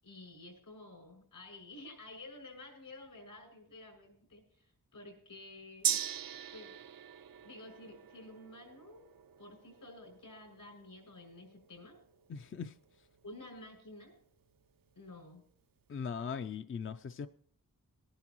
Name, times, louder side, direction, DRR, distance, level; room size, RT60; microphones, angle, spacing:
voice 1, 0.0-6.0 6.5-6.7 7.4-9.1 9.4-12.0 13.2-14.2 14.9-15.4, left 2 dB, 75° left, 3 dB, 6.5 m, -51 dB
Gong, 5.8-13.6 13.9-14.0, right 9 dB, 80° right, 0.6 m, -41 dB
voice 2, 12.3-12.8 15.9-17.3, left 6 dB, 40° left, 10 dB, 0.4 m, -39 dB
21.0 x 11.0 x 3.0 m, 0.63 s
wide cardioid pair, 90°, 34 cm